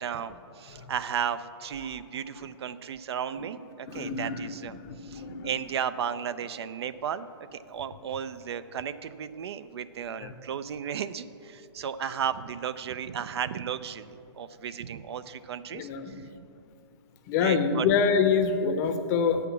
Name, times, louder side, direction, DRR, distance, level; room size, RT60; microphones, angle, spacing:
voice 1, 0.0-4.8 5.0-15.9 16.2-16.3 17.4-17.9, right 8 dB, 60° right, 14 dB, 0.4 m, -34 dB
voice 2, 3.9-5.5 10.2-10.3 15.7-16.2 17.3-19.4, left 6 dB, 35° left, 9 dB, 0.7 m, -26 dB
8.0 x 5.8 x 7.1 m, 2.5 s
hypercardioid pair, 135°, 15 cm